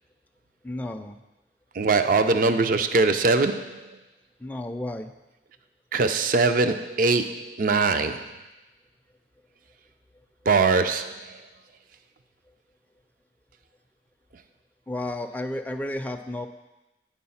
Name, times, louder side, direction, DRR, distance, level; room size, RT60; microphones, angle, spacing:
voice 1, 0.6-1.2 4.4-5.1 14.9-16.5, left 1 dB, 10° left, 4 dB, 0.4 m, -32 dB
voice 2, 1.8-3.8 5.9-8.3 10.5-11.4, right 3 dB, 50° right, 9 dB, 0.4 m, -22 dB
9.4 x 4.7 x 5.6 m, 1.0 s
head